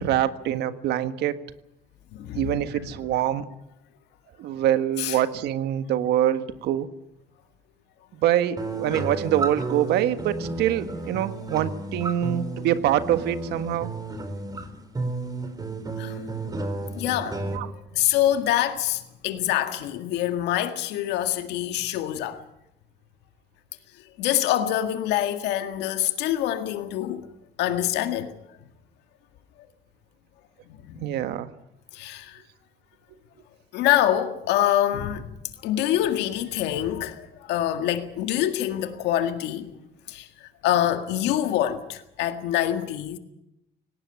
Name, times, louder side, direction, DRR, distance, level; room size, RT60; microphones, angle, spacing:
voice 1, 0.0-1.4 2.3-3.4 4.4-6.9 8.1-13.9 17.5-17.7 31.0-31.5, right 11 dB, 80° right, 1.6 m, -25 dB
voice 2, 2.1-2.5 5.0-5.2 16.0-16.2 16.9-17.6 17.9-22.4 24.2-27.3 27.6-28.3 30.9-31.1 31.9-32.4 33.7-35.3 35.6-39.7 40.1-43.2, left 12 dB, 90° left, 1.9 m, -25 dB
sound 1, 8.6-17.6, right 2 dB, 20° right, 3.8 m, -32 dB
18.5 x 18.0 x 9.7 m
cardioid pair, 110°, 17 cm